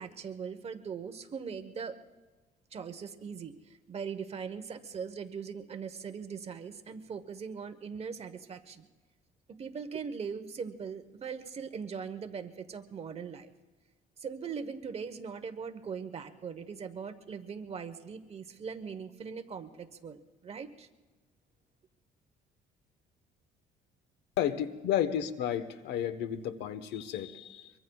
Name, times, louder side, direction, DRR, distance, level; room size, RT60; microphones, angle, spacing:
voice 1, 0.0-2.0 2.7-8.9 9.6-13.5 14.2-20.9, right 6 dB, 35° right, 9 dB, 1.1 m, -40 dB
voice 2, 24.4-27.7, left 10 dB, 85° left, 11 dB, 1.1 m, -32 dB
24.0 x 23.5 x 2.4 m, 1.2 s
cardioid pair, 110°, 17 cm